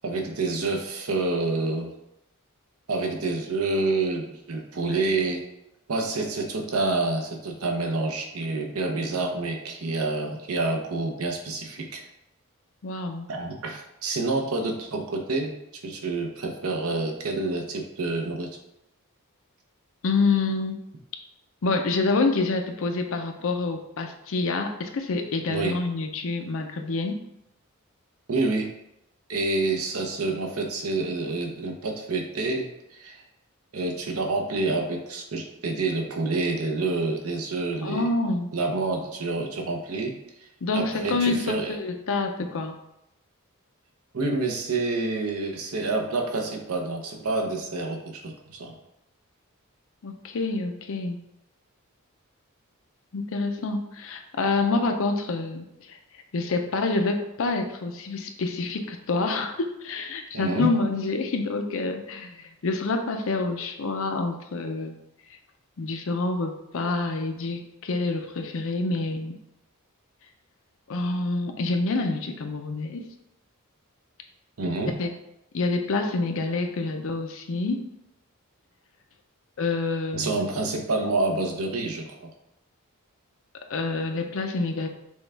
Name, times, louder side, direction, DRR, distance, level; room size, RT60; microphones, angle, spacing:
voice 1, 0.0-1.9 2.9-5.4 5.9-12.1 13.3-15.5 15.8-18.6 25.5-25.8 28.3-28.7 29.3-33.2 33.7-38.1 38.5-40.1 40.4-40.5 40.7-41.8 44.1-48.7 60.3-60.7 74.6-74.9 80.1-82.3, right 3 dB, 70° right, 2 dB, 0.8 m, -28 dB
voice 2, 12.8-13.3 20.0-20.8 21.6-27.2 37.8-38.5 40.6-42.7 50.0-51.2 53.1-56.0 56.3-64.9 65.8-69.4 70.9-73.0 74.8-75.1 75.5-77.8 79.6-80.4 83.7-84.9, left 3 dB, 60° left, 5 dB, 0.5 m, -27 dB
6.1 x 2.3 x 3.3 m, 0.84 s
head